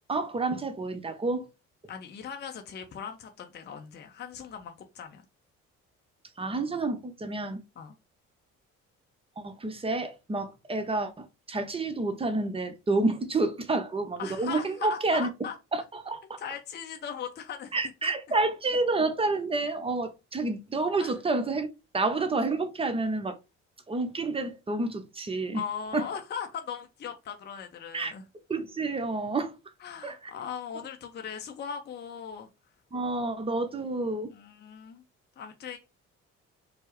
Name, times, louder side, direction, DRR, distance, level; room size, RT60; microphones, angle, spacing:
voice 1, 0.1-1.5 6.4-7.6 9.4-15.3 15.7-16.4 17.7-21.7 21.9-23.4 23.9-25.6 25.9-26.1 27.9-28.1 28.5-29.5 30.0-30.3 32.9-34.3, right 3 dB, 15° right, 0.7 m, -29 dB
voice 2, 1.9-5.2 7.8-7.9 13.0-13.1 14.2-15.6 16.4-17.8 18.0-18.1 21.0-21.1 25.5-28.2 29.8-32.5 34.3-35.0 35.4-35.8, left 7 dB, 25° left, 0.6 m, -39 dB
4.4 x 2.1 x 3.0 m
figure-of-eight pair, 45°, 39 cm